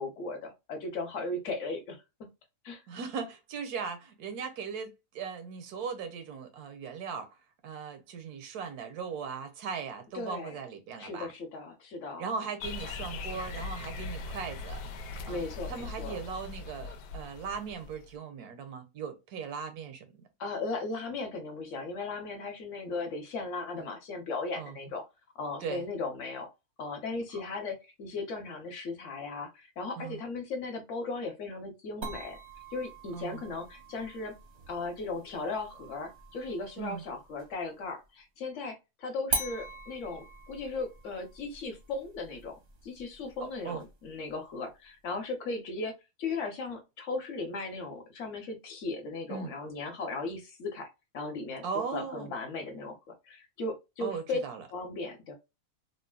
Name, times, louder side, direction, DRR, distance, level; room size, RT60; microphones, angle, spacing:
voice 1, 0.0-2.0 2.6-2.8 10.1-10.5 11.0-12.2 15.3-16.2 20.4-25.0 25.3-26.5 26.8-32.4 32.7-34.3 34.7-45.9 46.2-50.9 51.1-54.4 54.7-55.3, left 3 dB, 60° left, 1.1 m, -37 dB
voice 2, 2.9-7.4 7.6-11.3 12.2-14.8 15.3-15.4 15.7-20.2 23.8-23.9 24.5-24.8 25.6-25.8 30.0-30.2 33.1-33.4 36.8-37.0 43.4-43.8 49.3-49.5 51.6-52.3 54.0-54.7, right 6 dB, 90° right, 1.2 m, -38 dB
sound 1, 12.6-18.1, left 4 dB, 85° left, 1.1 m, -40 dB
sound 2, 32.0-37.6 39.3-44.3, right 3 dB, 45° right, 0.5 m, -42 dB
3.7 x 2.1 x 2.3 m
omnidirectional pair, 1.6 m